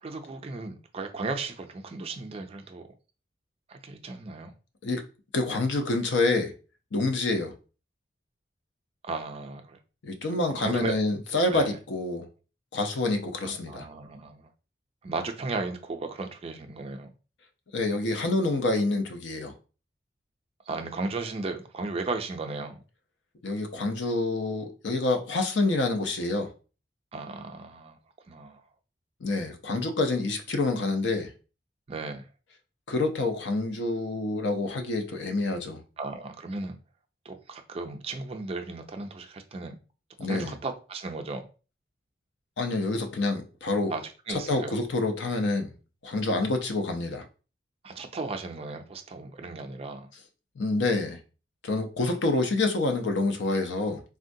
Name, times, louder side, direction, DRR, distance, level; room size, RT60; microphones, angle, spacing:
voice 1, 0.0-2.9 3.7-4.5 9.0-9.8 10.3-10.9 11.5-11.8 13.5-14.5 15.0-17.1 20.7-22.8 27.1-28.0 28.3-28.6 31.9-32.3 36.0-36.8 37.2-39.8 40.2-41.5 43.9-44.8 47.8-50.1 52.1-52.2, right 3 dB, 35° right, 0.4 m, -35 dB
voice 2, 5.3-6.5 6.9-7.5 10.0-12.3 12.7-13.9 17.7-19.5 23.4-26.5 29.2-31.3 32.9-35.8 40.2-40.5 42.6-43.9 44.3-45.7 46.0-47.2 50.6-51.2 51.6-54.0, left 2 dB, 80° left, 0.6 m, -27 dB
3.6 x 2.1 x 2.6 m
head